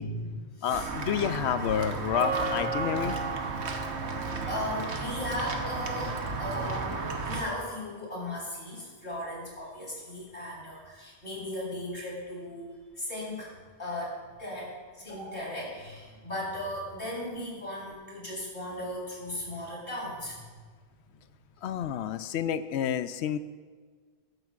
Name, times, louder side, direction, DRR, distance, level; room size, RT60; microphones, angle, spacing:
voice 1, 0.0-0.9 4.5-12.7 13.0-13.5 13.8-14.6 14.9-20.4, left 1 dB, 60° left, -5 dB, 4.1 m, -37 dB
voice 2, 0.6-3.2 21.6-23.4, left 9 dB, 85° left, 12 dB, 0.8 m, -29 dB
Walk footsteps / Bell, 0.7-7.4, right 3 dB, 90° right, 1.3 m, -32 dB
14.0 x 12.0 x 2.5 m, 1.5 s
omnidirectional pair, 1.1 m